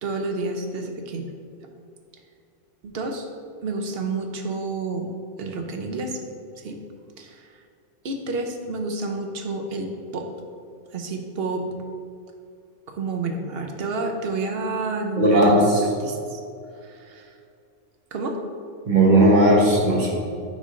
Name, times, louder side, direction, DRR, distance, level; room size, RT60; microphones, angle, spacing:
voice 1, 0.0-1.3 2.8-3.3 3.6-5.1 5.4-6.2 6.6-6.8 7.2-7.6 8.0-10.2 10.9-11.7 12.9-16.4 16.8-17.3 18.1-18.4, right 3 dB, 55° right, 4 dB, 0.9 m, -30 dB
voice 2, 15.2-15.6 18.9-20.1, right 1 dB, 40° right, -2 dB, 1.2 m, -16 dB
9.6 x 3.8 x 3.7 m, 2.4 s
omnidirectional pair, 1.3 m